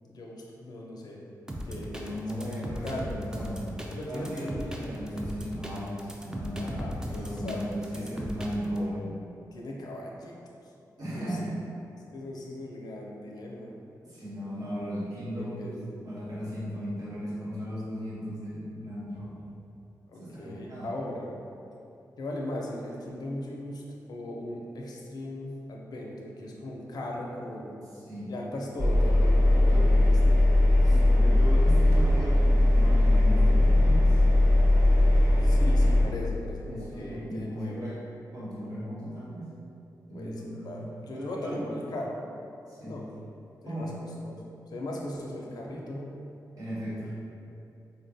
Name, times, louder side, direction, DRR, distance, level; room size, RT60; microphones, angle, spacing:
voice 1, 0.1-1.2 1.7-3.1 3.9-4.9 6.6-7.6 9.5-10.3 11.1-11.5 12.1-13.7 15.3-15.7 20.1-21.3 22.2-23.8 24.1-27.7 28.2-30.5 30.8-31.0 35.4-37.9 40.1-42.2 42.8-43.1 43.6-43.9 44.2-46.2, left 1 dB, 70° left, -2 dB, 0.5 m, -38 dB
sound 1, 1.5-8.8, equal, 10° right, 0.4 m, -37 dB
voice 2, 1.7-3.7 4.1-6.8 7.1-9.2 11.0-11.6 14.0-15.7 16.0-19.5 20.2-20.9 27.9-28.3 29.6-30.0 30.8-34.2 36.6-38.0 38.3-39.5 40.1-40.9 41.1-41.8 42.7-43.0 43.6-44.0 46.6-47.1, equal, 60° right, -10 dB, 1.0 m, -36 dB
Engine, 28.8-36.1, left 1 dB, 40° right, 1.1 m, -20 dB
3.7 x 2.2 x 2.6 m, 2.7 s
cardioid pair, 70°, 7 cm